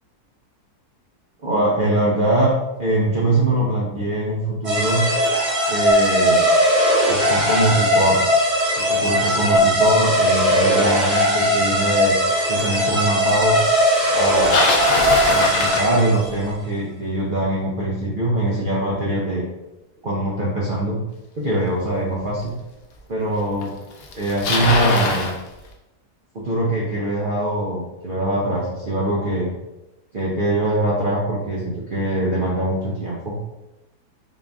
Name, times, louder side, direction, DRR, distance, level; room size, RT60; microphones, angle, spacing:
voice 1, 1.4-5.0 5.7-6.4 7.1-8.2 8.9-12.1 12.5-13.6 14.1-14.7 15.3-19.4 20.0-21.0 21.4-22.5 23.1-23.7 24.1-25.3 26.3-29.5 30.1-33.3, right 1 dB, 55° right, -5 dB, 0.5 m, -22 dB
sound 1, 4.6-16.3, equal, 30° right, 1.6 m, -19 dB
Bicycle, 14.1-16.5 21.5-21.6 22.5-22.6 23.6-23.7 23.9-25.4, left 3 dB, 65° left, 0.6 m, -22 dB
3.9 x 2.5 x 3.4 m, 0.97 s
omnidirectional pair, 1.7 m